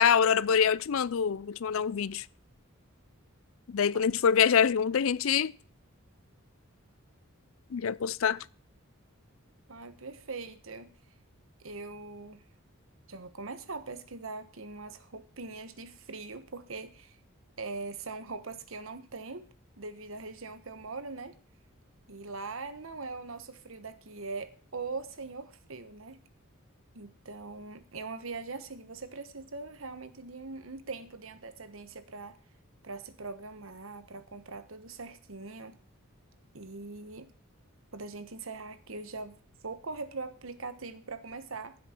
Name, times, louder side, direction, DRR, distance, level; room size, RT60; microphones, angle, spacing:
voice 1, 0.0-2.3 3.7-5.5 7.7-8.4, left 7 dB, 65° left, 0.4 m, -25 dB
voice 2, 9.7-10.9 11.6-12.4 13.1-17.2 17.6-19.4 19.8-21.4 22.1-26.2 26.9-32.4 32.8-35.8 36.5-37.3 37.9-39.4 39.6-41.8, right 3 dB, 65° right, 1.2 m, -41 dB
15.5 x 7.8 x 4.5 m
head